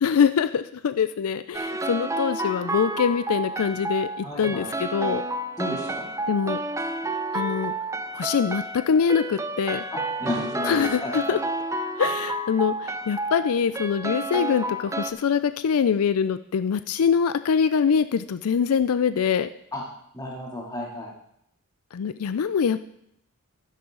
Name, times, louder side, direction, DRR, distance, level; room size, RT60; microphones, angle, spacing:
voice 1, 0.0-5.2 6.3-6.6 7.3-7.7 8.1-9.8 10.7-11.4 12.0-19.5 21.9-22.8, left 6 dB, 85° left, 13 dB, 0.4 m, -24 dB
sound 1, 1.5-15.1, right 2 dB, 15° right, 0.5 m, -30 dB
voice 2, 4.2-4.7 5.6-6.1 9.9-11.4 19.7-19.8 20.1-21.1, left 1 dB, 15° left, -3 dB, 2.7 m, -33 dB
12.0 x 10.5 x 3.8 m, 0.75 s
head